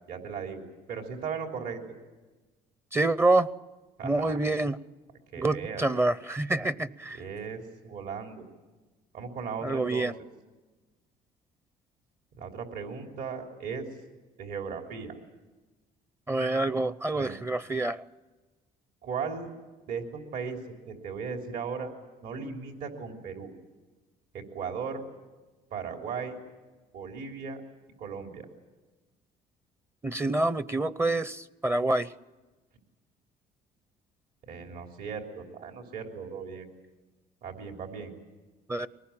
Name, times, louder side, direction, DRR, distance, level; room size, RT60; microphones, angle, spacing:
voice 1, 0.1-0.6 0.9-2.0 4.0-4.6 5.3-5.9 7.1-8.4 9.1-10.1 12.4-13.9 14.4-15.1 17.1-17.4 19.0-19.5 19.9-20.6 20.9-21.9 22.2-23.5 24.3-25.0 25.7-26.4 26.9-27.6 28.0-28.5 34.5-36.7 37.4-38.1, right 6 dB, 70° right, 3 dB, 3.5 m, -37 dB
voice 2, 2.9-3.5 4.0-4.8 5.4-7.2 9.6-10.1 16.3-18.0 30.0-32.1 38.7-38.9, right 2 dB, 15° right, 15 dB, 0.7 m, -27 dB
23.5 x 19.5 x 8.7 m, 1.2 s
cardioid pair, 110°, 17 cm